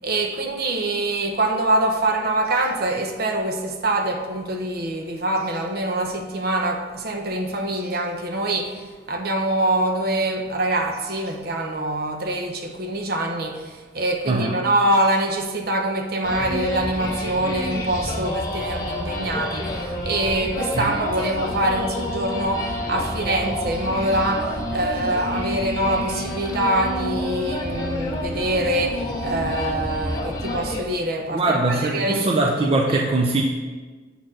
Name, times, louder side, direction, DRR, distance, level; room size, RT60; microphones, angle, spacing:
voice 1, 0.0-8.8 9.1-32.7 32.9-33.0, right 1 dB, 55° right, 4 dB, 0.8 m, -24 dB
voice 2, 14.3-14.6 20.7-21.0 31.3-33.4, right 2 dB, 30° right, 1 dB, 0.5 m, -21 dB
sound 1, 16.2-30.8, left 1 dB, 25° left, 1.8 m, -29 dB
7.1 x 4.5 x 6.1 m, 1.4 s
head